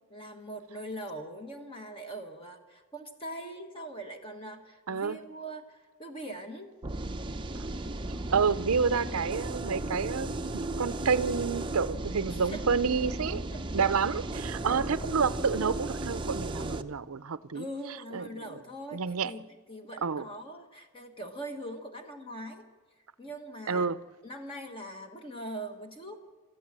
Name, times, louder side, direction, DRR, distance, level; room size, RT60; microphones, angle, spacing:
voice 1, 0.1-6.7 12.3-12.9 13.5-13.9 14.6-14.8 17.5-22.6 23.2-23.9 24.2-26.2, right 1 dB, 25° left, 1.4 m, -42 dB
voice 2, 4.9-5.2 8.3-10.5 10.8-13.5 13.7-17.7 18.1-18.4 18.9-19.3 20.0-20.3 23.7-24.0, right 5 dB, 75° right, 0.6 m, -29 dB
sound 1, 6.8-16.8, right 2 dB, 20° right, 0.7 m, -35 dB
29.0 x 14.0 x 7.5 m
head